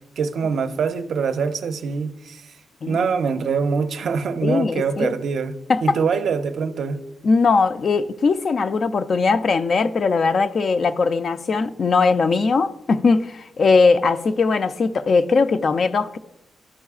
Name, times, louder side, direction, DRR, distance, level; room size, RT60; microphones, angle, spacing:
voice 1, 0.2-2.4 2.9-5.5 5.8-7.0, right 5 dB, 60° right, 0.4 m, -24 dB
voice 2, 4.4-5.1 5.7-6.0 7.2-16.2, left 4 dB, 40° left, 0.3 m, -20 dB
12.5 x 5.5 x 2.4 m
wide cardioid pair, 155°, 0 cm